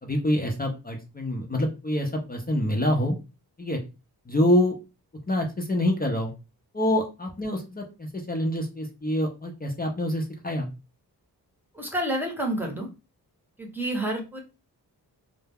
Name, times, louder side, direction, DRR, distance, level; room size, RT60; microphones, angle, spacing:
voice 1, 0.0-3.2 3.6-3.8 4.3-4.7 5.3-6.3 6.7-10.7, left 1 dB, 25° left, 1 dB, 0.5 m, -26 dB
voice 2, 11.7-12.9 13.6-14.4, right 1 dB, 5° right, 0 dB, 0.8 m, -29 dB
2.3 x 2.1 x 3.4 m, 0.28 s
wide cardioid pair, 80°, 40 cm